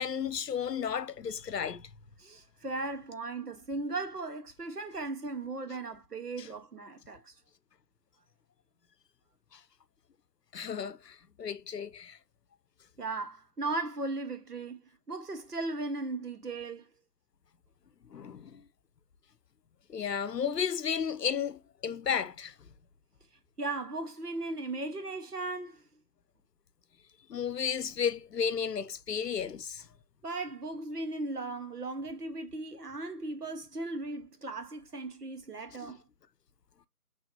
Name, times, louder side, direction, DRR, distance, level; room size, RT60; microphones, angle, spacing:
voice 1, 0.0-1.9 6.4-6.5 10.5-12.2 18.1-18.6 19.9-22.5 27.3-29.8 35.8-35.9, left 7 dB, 85° left, 0.7 m, -33 dB
voice 2, 2.2-7.3 13.0-14.8 15.1-16.9 23.6-25.8 30.2-36.0, right 2 dB, 70° right, 1.2 m, -37 dB
5.5 x 3.4 x 2.7 m
figure-of-eight pair, 180°, 48 cm